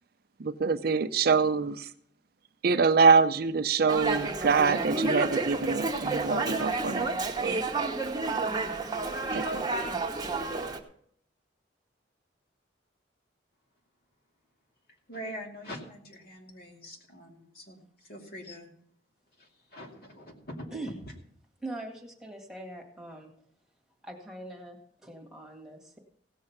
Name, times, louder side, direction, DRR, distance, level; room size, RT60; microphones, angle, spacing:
voice 1, 0.4-1.9 2.6-7.1 7.4-7.5 9.3-9.6, right 5 dB, 60° right, 11 dB, 0.6 m, -25 dB
Dog, 3.9-10.8, right 3 dB, 20° right, 1.1 m, -30 dB
voice 2, 15.1-18.7 19.4-20.7, equal, 55° left, 1 dB, 2.5 m, -44 dB
voice 3, 21.6-23.3 24.0-26.0, right 2 dB, 5° right, 1 dB, 1.9 m, -42 dB
16.5 x 6.5 x 5.9 m, 0.66 s
head